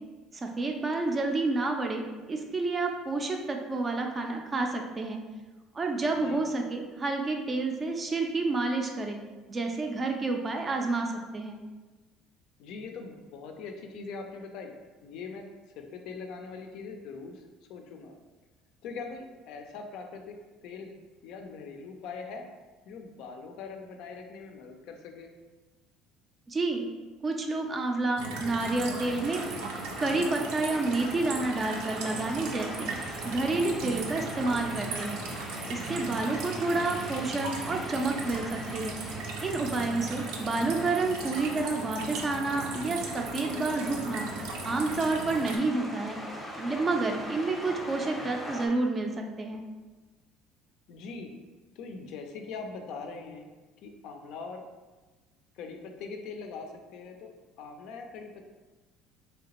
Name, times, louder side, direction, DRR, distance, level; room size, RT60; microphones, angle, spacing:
voice 1, 0.3-5.2 5.7-9.2 9.5-11.6 26.5-26.8 27.2-29.4 30.0-32.9 33.2-35.2 35.7-39.0 39.4-44.2 44.6-46.2 46.6-49.6, right 3 dB, 25° right, 3 dB, 0.4 m, -29 dB
voice 2, 6.1-6.4 12.6-14.8 15.0-15.5 15.8-17.4 17.7-18.1 18.8-20.4 20.6-20.9 21.2-22.5 22.9-25.3 36.6-36.9 50.9-51.3 51.8-53.5 53.8-54.7 55.6-57.3 57.6-58.4, left 4 dB, 65° left, 4 dB, 0.4 m, -42 dB
sound 1, 28.2-45.6, right 3 dB, 85° right, 0.5 m, -37 dB
sound 2, 29.0-48.7, equal, 5° left, 0.7 m, -42 dB
3.3 x 2.8 x 2.9 m, 1.2 s
cardioid pair, 140°, 0 cm